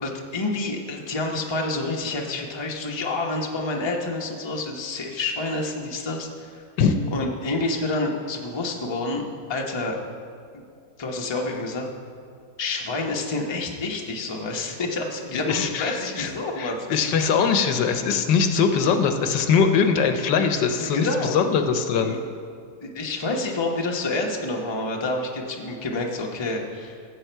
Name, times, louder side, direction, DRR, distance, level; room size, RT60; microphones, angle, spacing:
voice 1, 0.0-6.6 7.1-9.2 9.5-10.0 10.5-10.6 11.0-11.9 12.6-17.0 20.9-21.4 22.0-22.2 22.8-26.9, left 2 dB, 20° left, 0 dB, 0.7 m, -28 dB
voice 2, 15.3-16.3 16.6-22.2, left 6 dB, 80° left, 7 dB, 1.4 m, -22 dB
15.5 x 7.5 x 4.5 m, 2.3 s
omnidirectional pair, 1.9 m